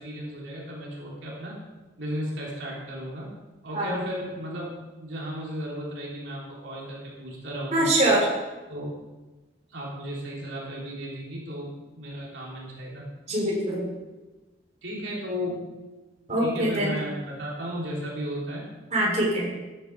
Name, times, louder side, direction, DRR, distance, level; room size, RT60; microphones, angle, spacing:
voice 1, 0.0-1.6 2.0-3.3 3.6-4.7 5.0-7.9 8.7-9.0 9.7-13.5 14.8-15.7 16.4-18.7, equal, 75° right, -4 dB, 3.2 m, -35 dB
voice 2, 7.7-8.3 13.3-13.9 16.3-16.9 18.9-19.5, right 1 dB, 35° right, -3 dB, 3.7 m, -23 dB
13.5 x 10.0 x 4.6 m, 1.2 s
head